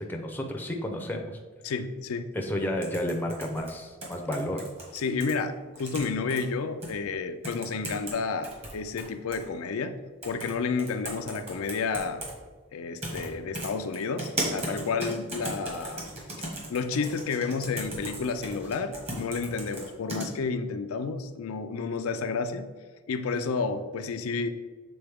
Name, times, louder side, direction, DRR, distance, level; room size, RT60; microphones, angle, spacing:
voice 1, 0.0-1.4 2.3-4.7, left 1 dB, 10° left, 2 dB, 0.6 m, -31 dB
voice 2, 1.6-2.3 4.9-10.0 10.2-12.2 12.7-16.0 16.4-22.7 23.1-24.5, left 4 dB, 85° left, 9 dB, 0.4 m, -31 dB
sound 1, 2.8-5.3 5.7-6.4 6.8-6.9 7.4-8.1 8.4-9.4 10.2-10.5 10.8-12.3 13.0-13.3 13.5-20.3, right 1 dB, 30° right, 1.5 m, -36 dB
6.9 x 3.9 x 3.5 m, 1.4 s
head